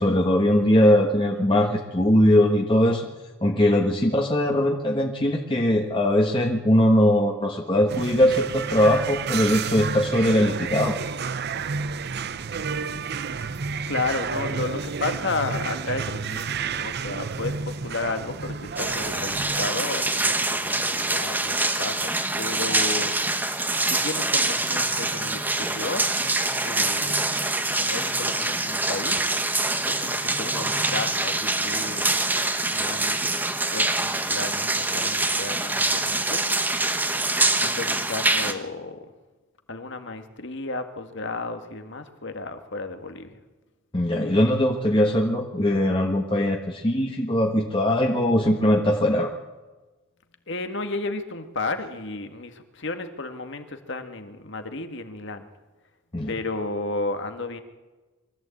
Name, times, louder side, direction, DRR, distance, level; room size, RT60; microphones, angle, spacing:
voice 1, 0.0-3.1 3.4-11.0 43.9-49.3 56.1-56.3, left 1 dB, 25° left, 1 dB, 1.4 m, -21 dB
sound 1, 7.9-19.7, right 5 dB, 50° right, 0.7 m, -31 dB
voice 2, 13.9-23.4 23.9-26.1 26.6-27.3 27.8-32.2 32.7-33.3 33.7-36.5 37.5-39.1 39.7-43.4 50.5-55.5 56.3-57.6, left 3 dB, 60° left, 7 dB, 1.8 m, -33 dB
sound 2, 18.8-38.5, right 2 dB, 10° right, 1.1 m, -25 dB
23.0 x 14.5 x 8.5 m, 1.2 s
head